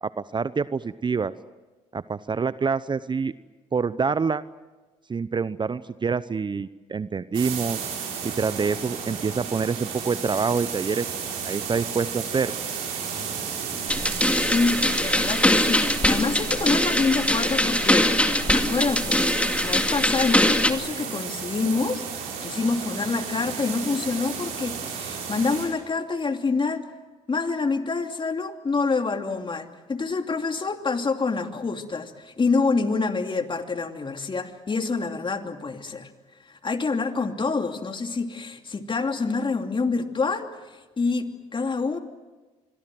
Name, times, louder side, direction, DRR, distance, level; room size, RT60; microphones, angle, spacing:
voice 1, 0.0-1.3 1.9-3.3 3.7-4.4 5.1-7.8 8.2-12.5, right 5 dB, 30° right, 16 dB, 0.8 m, -26 dB
sound 1, 7.3-25.7, right 6 dB, 80° right, 7.0 m, -33 dB
sound 2, 13.9-20.7, left 1 dB, 10° left, 2.2 m, -22 dB
voice 2, 14.3-19.2 19.6-26.8 27.3-36.1 36.4-40.5 41.0-42.0, left 4 dB, 30° left, 6 dB, 2.8 m, -27 dB
26.5 x 22.5 x 7.7 m, 1.2 s
supercardioid pair, 65°, 15 cm